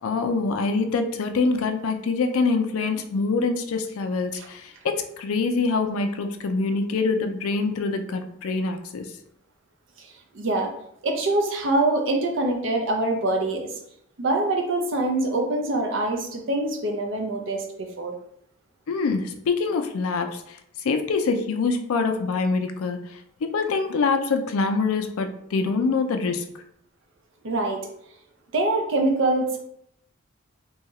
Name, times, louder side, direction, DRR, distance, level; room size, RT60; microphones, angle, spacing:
voice 1, 0.0-9.1 18.9-26.5, left 4 dB, 85° left, 7 dB, 0.4 m, -25 dB
voice 2, 10.0-10.7 11.0-13.7 14.2-18.2 27.4-27.9 28.5-29.6, right 2 dB, 60° right, 3 dB, 0.5 m, -24 dB
2.7 x 2.3 x 3.0 m, 0.72 s
head